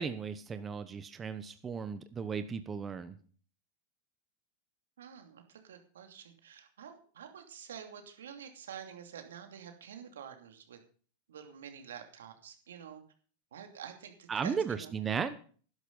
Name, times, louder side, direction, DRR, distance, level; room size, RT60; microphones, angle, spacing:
voice 1, 0.0-3.2 14.3-15.4, right 6 dB, 25° right, 11 dB, 1.0 m, -35 dB
voice 2, 5.0-10.8 11.3-13.0 13.5-14.9, right 8 dB, 85° right, 5 dB, 2.7 m, -48 dB
12.0 x 11.0 x 5.5 m, 0.43 s
hypercardioid pair, 110°, 0 cm